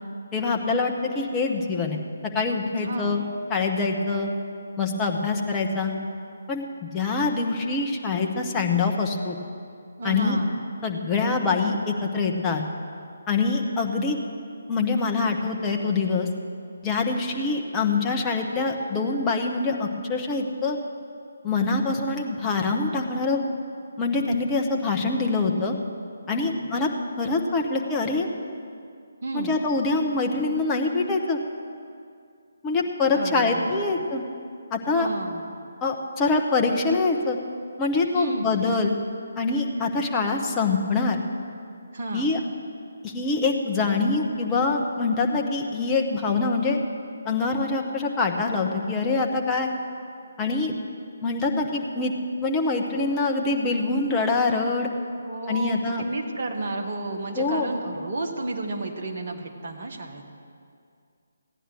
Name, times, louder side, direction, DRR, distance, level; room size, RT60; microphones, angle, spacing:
voice 1, 0.3-2.0 2.3-3.2 3.5-4.3 4.8-5.9 6.5-9.4 10.0-10.4 10.8-12.6 13.3-14.2 14.7-16.3 16.8-20.8 21.4-23.4 24.0-25.7 26.3-26.9 27.2-28.3 29.3-31.4 32.6-34.2 34.7-35.1 35.8-37.4 37.8-38.9 39.4-41.2 42.1-42.4 43.0-46.8 47.2-49.7 50.4-50.8 51.2-52.1 52.4-54.9 55.5-56.0 57.4-57.7, left 3 dB, 15° left, 0 dB, 1.1 m, -24 dB
voice 2, 2.8-3.2 10.0-10.6 26.3-26.7 29.2-29.5 33.1-33.9 34.9-35.5 38.1-38.5 41.9-42.3 55.2-60.2, right 2 dB, 45° right, 2 dB, 1.5 m, -32 dB
15.0 x 9.9 x 6.3 m, 2.3 s
figure-of-eight pair, 145°, 0 cm